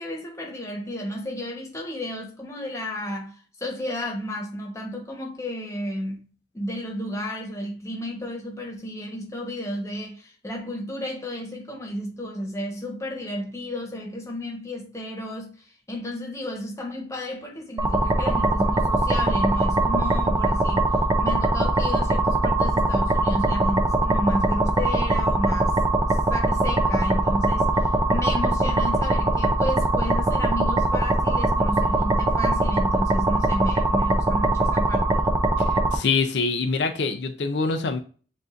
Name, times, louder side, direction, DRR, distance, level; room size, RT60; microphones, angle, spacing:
voice 1, 0.0-6.2 6.5-25.8 26.3-35.3, equal, 15° left, 1.1 m, -32 dB
sound 1, 17.8-36.0, right 2 dB, 20° right, 0.5 m, -22 dB
voice 2, 35.9-38.0, left 4 dB, 80° left, 0.5 m, -24 dB
7.3 x 2.6 x 2.5 m
head